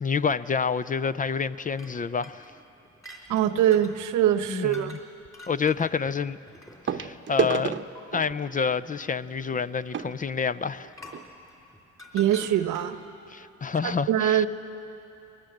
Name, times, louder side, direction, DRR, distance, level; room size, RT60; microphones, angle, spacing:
voice 1, 0.0-2.5 4.5-5.0 5.5-6.4 6.8-7.7 8.1-10.9 13.3-14.5, left 6 dB, 25° left, 0.4 m, -28 dB
sound 1, 1.7-4.0 4.7-5.0 5.3-7.1 7.9-8.0 10.9-13.1, left 1 dB, 10° left, 3.5 m, -47 dB
sound 2, 3.3-3.6 5.3-5.4 6.9-11.3 12.1-12.2 12.4-12.5 13.1-13.2, right 7 dB, 40° right, 0.8 m, -33 dB
voice 2, 3.3-5.0 12.1-13.0 13.8-14.5, right 11 dB, 80° right, 1.0 m, -23 dB
22.0 x 19.0 x 7.8 m
cardioid pair, 90°, 30 cm